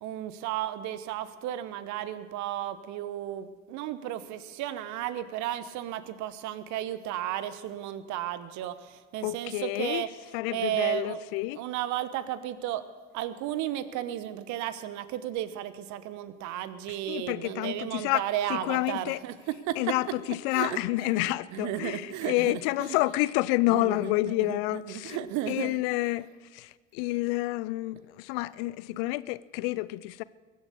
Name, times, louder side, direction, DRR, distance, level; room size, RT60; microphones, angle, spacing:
voice 1, 0.0-10.1 10.5-11.2 11.6-12.8 13.1-19.3 19.7-19.8 20.5-22.6 22.9-23.0 23.7-25.8, right 12 dB, 55° right, 1.1 m, -34 dB
voice 2, 9.2-10.0 10.3-11.6 16.9-18.2 18.5-19.2 19.8-25.2 25.5-26.3 26.5-30.2, left 19 dB, 55° left, 0.5 m, -29 dB
22.0 x 9.4 x 6.7 m
figure-of-eight pair, 60°, 36 cm